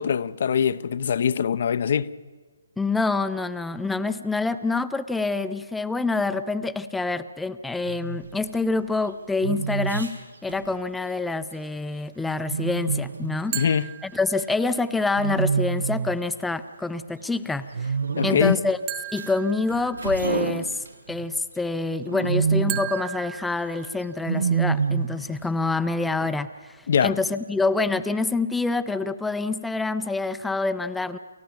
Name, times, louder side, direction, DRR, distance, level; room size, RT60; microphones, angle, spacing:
voice 1, 0.0-2.1 13.5-13.9 18.2-18.6 26.9-27.2, left 7 dB, 50° left, 0.7 m, -23 dB
voice 2, 2.8-13.6 14.0-17.9 18.2-18.8 19.1-20.8 21.1-31.2, left 3 dB, 5° left, 0.6 m, -26 dB
Wild animals, 7.8-8.2 9.4-10.1 12.5-13.4 15.2-16.2 17.7-18.7 20.2-21.3 22.1-22.9 24.2-25.3, right 5 dB, 65° right, 0.8 m, -26 dB
sound 1, 8.2-11.2 11.6-11.7 12.0-13.5 13.8-13.9 14.3-14.5 15.5-15.6 16.5-16.8 17.8-17.9 18.2-18.3 18.9-21.1 23.3-23.8, right 2 dB, 90° right, 5.7 m, -42 dB
sound 2, 13.5-14.8 18.9-20.4 22.7-24.4, right 14 dB, 25° right, 1.4 m, -36 dB
28.5 x 14.5 x 7.3 m
figure-of-eight pair, 140°, 0 cm